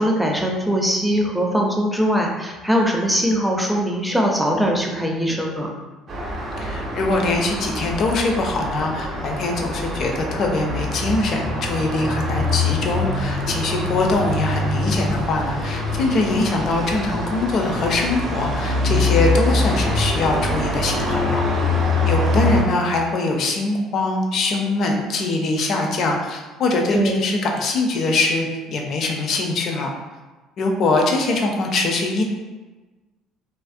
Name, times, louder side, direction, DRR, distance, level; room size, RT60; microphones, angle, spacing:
voice 1, 0.0-5.7 26.9-27.1, equal, 5° right, -1 dB, 0.4 m, -21 dB
Traffic noise roadway noise, 6.1-22.6, left 2 dB, 45° right, 0.6 m, -24 dB
voice 2, 6.6-21.4 22.0-29.9 30.6-32.2, left 2 dB, 55° left, 1 dB, 0.4 m, -22 dB
2.4 x 2.0 x 2.5 m, 1.2 s
supercardioid pair, 85°, 0 cm